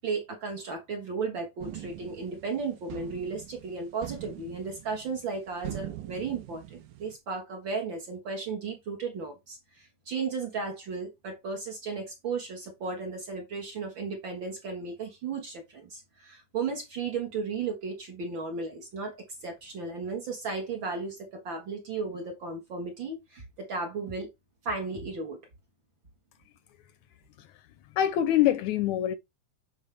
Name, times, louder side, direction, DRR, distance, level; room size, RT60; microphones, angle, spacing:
voice 1, 0.0-24.3 24.6-25.4, right 4 dB, 50° right, 1.7 m, -35 dB
sound 1, 1.6-7.2, right 12 dB, 85° right, 2.4 m, -43 dB
voice 2, 27.9-29.2, left 11 dB, 75° left, 1.9 m, -24 dB
8.4 x 4.6 x 3.3 m
omnidirectional pair, 3.6 m